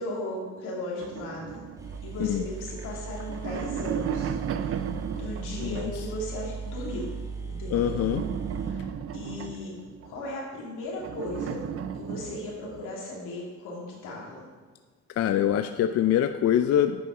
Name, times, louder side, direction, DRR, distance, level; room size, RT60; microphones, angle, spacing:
voice 1, 0.0-1.6 2.0-7.1 7.4-8.0 8.6-9.7 10.0-11.6 11.9-14.4, left 1 dB, 90° left, -3 dB, 2.4 m, -36 dB
sound 1, 1.0-2.6 3.1-6.2 7.7-10.3 11.0-12.9, right 8 dB, 50° right, 0.5 m, -35 dB
sound 2, 1.5-1.6 1.8-9.6, right 5 dB, 10° right, 1.5 m, -38 dB
voice 2, 5.6-5.9 7.7-8.2 15.2-17.0, left 10 dB, 55° left, 9 dB, 0.4 m, -24 dB
9.7 x 5.4 x 4.9 m, 1.4 s
cardioid pair, 90°, 30 cm